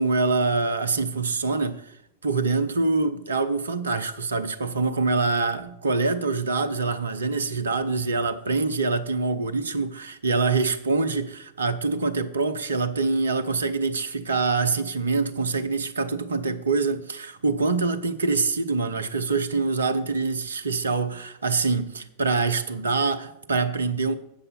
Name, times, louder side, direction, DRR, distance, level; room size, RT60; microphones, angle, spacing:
voice 1, 0.0-1.8 2.2-24.1, right 4 dB, 70° right, 0.7 m, -25 dB
8.7 x 6.7 x 5.8 m
figure-of-eight pair, 90°, 0 cm